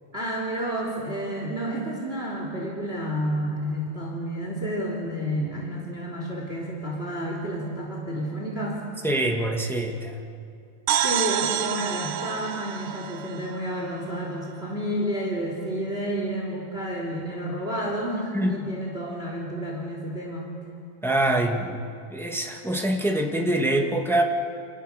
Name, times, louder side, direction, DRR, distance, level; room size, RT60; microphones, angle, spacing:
voice 1, 0.1-8.8 11.0-20.5, equal, 20° right, -1 dB, 3.4 m, -30 dB
voice 2, 9.0-10.1 18.3-18.5 21.0-21.8 22.1-24.2, right 1 dB, ahead, 1 dB, 1.0 m, -24 dB
sound 1, 10.9-14.5, right 10 dB, 90° right, 2.5 m, -28 dB
29.5 x 27.5 x 6.7 m, 2.5 s
omnidirectional pair, 3.7 m